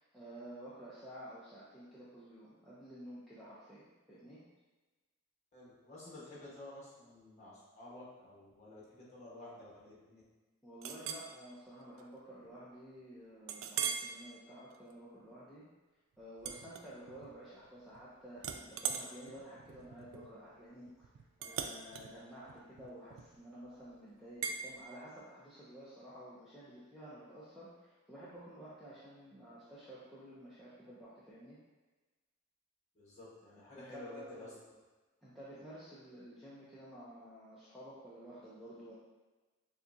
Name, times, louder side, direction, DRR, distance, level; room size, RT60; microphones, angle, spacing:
voice 1, 0.0-4.4 10.6-15.6 16.2-21.1 21.4-31.6 33.7-34.6 35.2-38.9, right 1 dB, ahead, -12 dB, 0.7 m, -52 dB
voice 2, 5.5-10.2 32.9-34.7, left 2 dB, 35° left, -8 dB, 1.4 m, -51 dB
Chink clink, 10.8-11.3 11.8-12.0 12.5-12.6 13.5-14.1 14.6-14.9 16.4-17.3 17.7-18.1 18.4-23.5 24.4-24.6, right 7 dB, 75° right, 0.3 m, -41 dB
6.5 x 2.4 x 2.7 m, 1.2 s
head